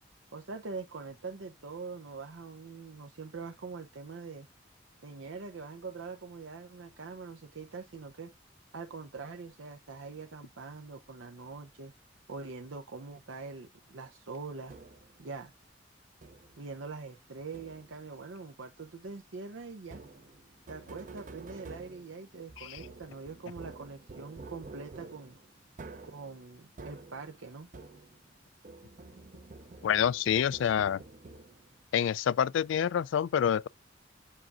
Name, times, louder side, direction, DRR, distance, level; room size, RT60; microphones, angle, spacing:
voice 1, 0.3-4.5 5.0-8.3 8.7-11.9 12.3-14.8 15.2-15.5 16.6-20.0 20.7-25.4 26.0-27.7, right 4 dB, 85° right, 0.7 m, -43 dB
sound 1, 14.7-15.2 16.2-16.7 17.5-18.1 19.8-28.3 28.6-31.8, right 3 dB, 40° right, 0.6 m, -49 dB
voice 2, 29.8-31.0 31.9-33.7, left 9 dB, 75° left, 0.3 m, -27 dB
7.6 x 5.9 x 2.4 m
head